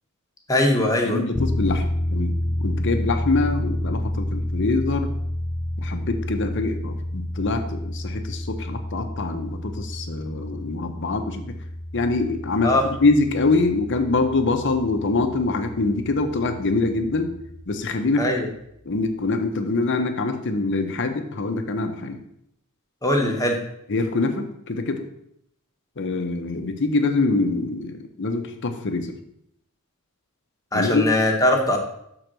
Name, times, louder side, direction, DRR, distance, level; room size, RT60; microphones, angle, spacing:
voice 1, 0.5-1.2 12.6-12.8 18.2-18.5 23.0-23.6 30.7-31.8, left 1 dB, 15° left, 1 dB, 1.1 m, -20 dB
voice 2, 1.1-1.8 2.1-2.3 2.6-5.1 5.8-11.4 11.9-12.7 13.0-17.3 17.7-18.3 18.9-22.2 23.9-25.0 26.0-29.2 30.7-31.0, left 3 dB, 55° left, 6 dB, 0.8 m, -24 dB
sound 1, 1.3-17.7, left 1 dB, 30° left, 0.5 m, -30 dB
6.7 x 3.9 x 6.1 m, 0.75 s
head